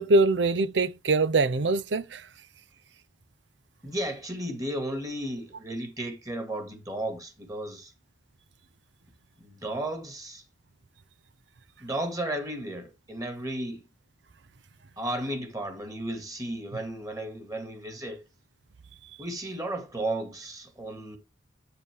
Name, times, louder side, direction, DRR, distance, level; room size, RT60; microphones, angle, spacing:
voice 1, 0.0-2.2, right 3 dB, 75° right, 0.6 m, -23 dB
voice 2, 3.8-7.9 9.4-10.4 11.8-13.8 15.0-18.2 19.2-21.2, right 1 dB, 20° right, 2.0 m, -34 dB
8.7 x 6.8 x 3.5 m
head